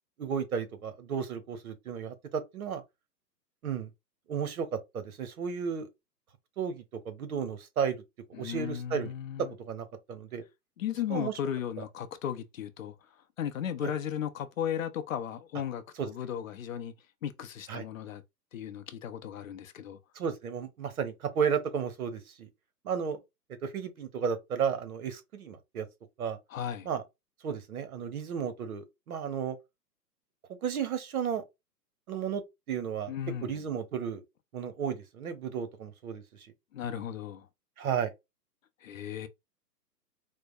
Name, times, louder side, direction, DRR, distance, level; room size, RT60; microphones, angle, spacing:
voice 1, 0.2-2.8 3.6-3.9 4.3-5.9 6.6-8.0 8.4-9.1 9.4-10.4 11.1-11.3 13.8-13.9 16.0-16.1 17.7-17.8 20.1-22.5 22.8-23.2 23.6-25.8 26.2-26.4 26.8-27.0 27.4-29.6 30.6-31.4 32.1-32.4 32.7-33.1 33.4-34.2 34.5-36.2 37.8-38.1, right 7 dB, 60° right, 1.0 m, -33 dB
voice 2, 8.3-9.5 10.8-12.9 13.4-16.9 17.2-18.2 18.5-20.0 26.5-26.9 33.1-33.6 36.7-37.5 38.8-39.3, left 9 dB, 55° left, 0.6 m, -35 dB
4.5 x 2.2 x 2.6 m
hypercardioid pair, 140°, 50 cm